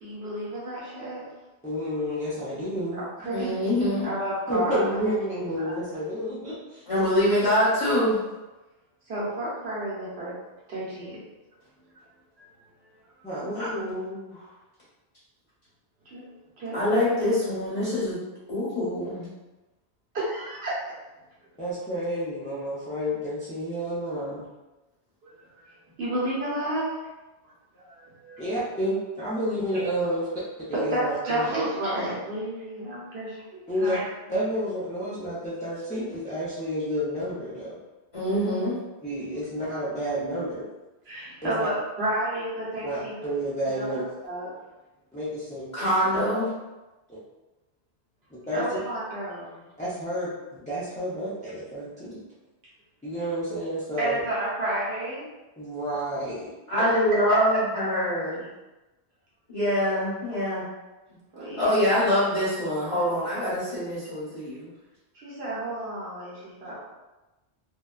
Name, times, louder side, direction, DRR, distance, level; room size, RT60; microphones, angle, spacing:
voice 1, 0.0-1.3 2.9-3.5 4.0-5.0 5.6-5.7 9.1-10.3 10.7-11.2 12.4-12.5 13.2-13.3 16.1-16.2 16.6-16.8 20.1-20.8 25.7-26.9 27.7-28.4 30.7-34.1 41.0-43.2 43.8-44.5 48.5-49.7 54.0-55.2 56.8-57.0 57.3-57.4 61.3-61.8 65.1-66.7, right 1 dB, 70° right, -7 dB, 1.1 m, -31 dB
voice 2, 1.6-3.0 3.4-3.5 4.5-6.8 13.2-13.5 21.6-24.4 28.4-30.3 30.6-31.5 33.7-34.0 34.3-37.8 39.0-40.7 41.4-41.7 42.8-44.0 45.1-45.6 47.1-47.2 48.3-48.7 49.8-52.2 53.0-54.2 55.6-56.5, equal, 15° left, -10 dB, 0.3 m, -30 dB
voice 3, 3.3-4.1 6.9-8.2 13.4-14.4 16.7-18.2 18.5-19.3 38.1-38.7 45.7-46.5 56.7-58.4 59.5-60.6 61.6-64.7, equal, 30° left, -10 dB, 1.1 m, -25 dB
2.6 x 2.2 x 2.3 m, 1.1 s
omnidirectional pair, 1.1 m